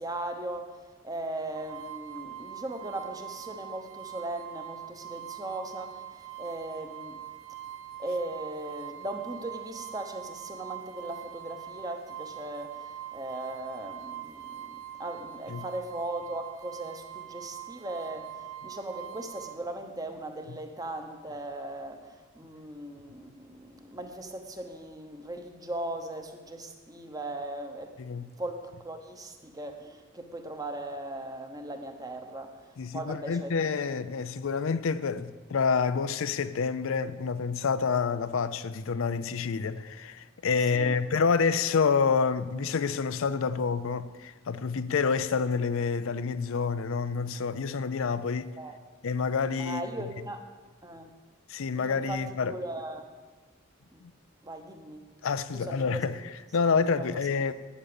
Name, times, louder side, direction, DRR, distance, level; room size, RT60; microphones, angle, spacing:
voice 1, 0.0-7.2 8.0-28.0 28.4-34.0 40.6-41.0 48.6-48.8 49.6-50.5 50.8-51.1 51.7-53.2 53.9-54.0 54.4-55.1 55.5-56.1 56.9-57.3, right 1 dB, 15° right, 1.0 m, -38 dB
sound 1, 1.5-19.5, right 11 dB, 70° right, 0.7 m, -43 dB
voice 2, 32.8-48.5 49.0-49.8 51.5-52.5 54.0-54.1 55.2-56.1 56.5-57.5, left 5 dB, 70° left, 0.5 m, -28 dB
11.5 x 9.0 x 7.0 m
head